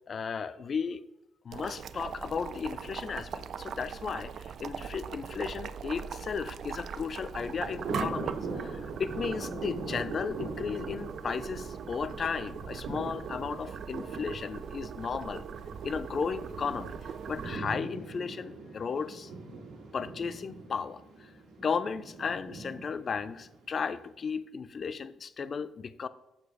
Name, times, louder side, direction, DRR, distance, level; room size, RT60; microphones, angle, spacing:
voice 1, 0.1-1.0 1.4-8.3 8.6-15.4 15.8-19.3 19.9-21.3 21.6-26.1, left 6 dB, 45° left, 15 dB, 0.4 m, -35 dB
Boiling, 1.5-17.6, right 7 dB, 60° right, 0.3 m, -40 dB
Thunder, 7.0-24.0, right 3 dB, 85° right, 2.0 m, -42 dB
7.1 x 5.0 x 4.7 m, 0.88 s
cardioid pair, 90°, 0 cm